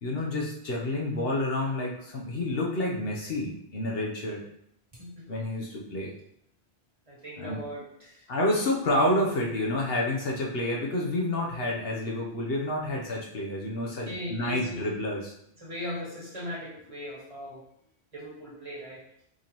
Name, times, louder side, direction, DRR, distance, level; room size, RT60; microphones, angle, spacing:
voice 1, 0.0-4.4 5.3-6.1 7.4-7.6 8.3-15.3, left 1 dB, 65° left, -2 dB, 1.1 m, -29 dB
voice 2, 4.9-5.3 7.1-8.3 14.1-14.8 15.6-17.6 18.1-19.0, left 1 dB, 30° right, -6 dB, 1.7 m, -38 dB
5.0 x 3.4 x 2.9 m, 0.74 s
omnidirectional pair, 1.1 m